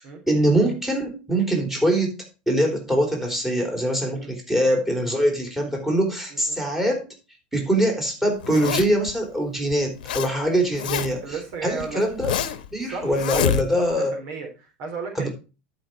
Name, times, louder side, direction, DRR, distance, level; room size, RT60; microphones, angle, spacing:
voice 1, 0.3-2.2 2.5-7.1 7.5-12.3 12.7-14.1 15.2-15.3, right 1 dB, 5° right, 2 dB, 3.4 m, -23 dB
Zipper (clothing), 8.4-9.1 9.7-10.3 10.6-11.3 11.8-12.7 13.1-14.0, left 9 dB, 85° left, 0.9 m, -26 dB
voice 2, 11.2-12.0 12.8-13.4 13.8-15.3, right 5 dB, 60° right, 4 dB, 3.5 m, -34 dB
11.5 x 5.3 x 4.3 m, 0.31 s
hypercardioid pair, 105°, 5 cm